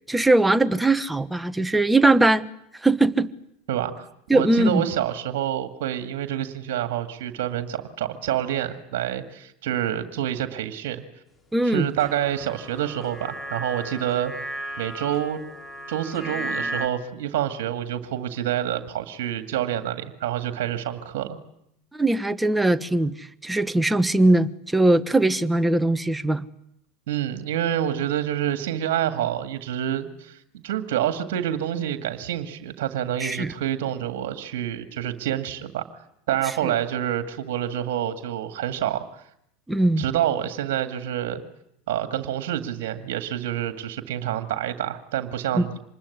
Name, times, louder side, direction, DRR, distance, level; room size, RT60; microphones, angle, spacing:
voice 1, 0.1-2.5 2.8-3.3 4.3-4.8 11.5-11.9 21.9-26.5 33.2-33.5 39.7-40.0 45.5-45.6, right 2 dB, 10° right, 13 dB, 1.1 m, -20 dB
voice 2, 3.7-4.0 4.3-11.0 11.6-14.3 14.8-15.4 15.9-21.4 27.1-35.8 36.3-39.0 40.0-41.4 41.9-45.8, right 11 dB, 65° right, 9 dB, 2.0 m, -27 dB
sound 1, 12.0-16.9, right 1 dB, 20° left, 3.5 m, -35 dB
26.0 x 20.5 x 9.7 m, 0.76 s
hypercardioid pair, 80°, 0 cm